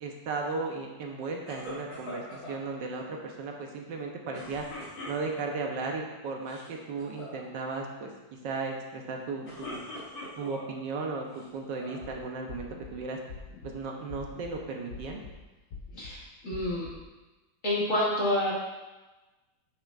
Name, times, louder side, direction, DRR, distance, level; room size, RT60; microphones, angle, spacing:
voice 1, 0.0-4.6 5.1-8.1 8.4-9.8 10.4-13.2 13.6-15.2, right 3 dB, 75° right, 1 dB, 1.5 m, -35 dB
sound 1, 1.5-2.6 4.3-5.6 6.3-6.7 7.0-7.4 9.2-10.7 11.3-12.1, left 1 dB, 85° left, 3.1 m, -42 dB
sound 2, 11.9-12.1 12.5-12.9 13.3-13.7 14.1-14.5 14.9-15.3 15.7-16.1 16.5-16.9, left 5 dB, 60° left, 1.2 m, -44 dB
voice 2, 16.0-16.9 17.6-18.5, left 1 dB, 45° left, -6 dB, 2.3 m, -28 dB
9.7 x 6.6 x 2.5 m, 1.1 s
omnidirectional pair, 2.0 m